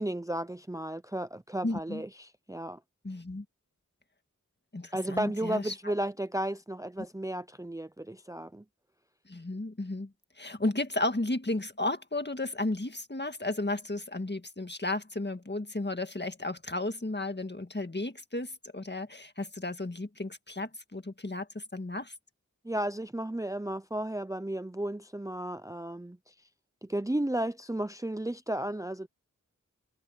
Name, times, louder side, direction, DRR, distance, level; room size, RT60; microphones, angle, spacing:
voice 1, 0.0-2.8 4.9-8.6 22.6-26.3 26.8-29.1, right 1 dB, 10° right, 0.7 m, -34 dB
voice 2, 1.6-2.0 3.0-3.5 4.7-5.7 9.3-10.1 10.4-22.1, left 2 dB, 35° left, 1.8 m, -33 dB
wide cardioid pair, 45°, 31 cm